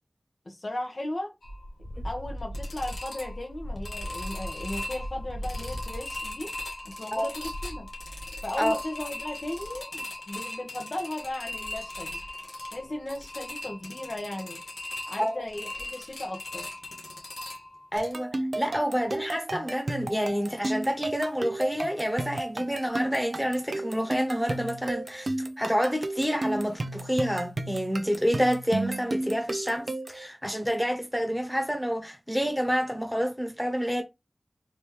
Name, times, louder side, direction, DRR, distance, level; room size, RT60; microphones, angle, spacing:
voice 1, 0.4-1.3 2.0-6.5 6.8-7.9 8.4-12.2 12.7-14.6 15.1-16.7, left 1 dB, 60° left, 1.2 m, -36 dB
sound 1, 1.4-18.1, left 1 dB, 80° left, 1.2 m, -38 dB
voice 2, 17.9-34.0, equal, ahead, 1.3 m, -28 dB
sound 2, 18.0-30.3, right 2 dB, 65° right, 0.7 m, -33 dB
4.3 x 3.0 x 3.3 m
wide cardioid pair, 60°, 0 cm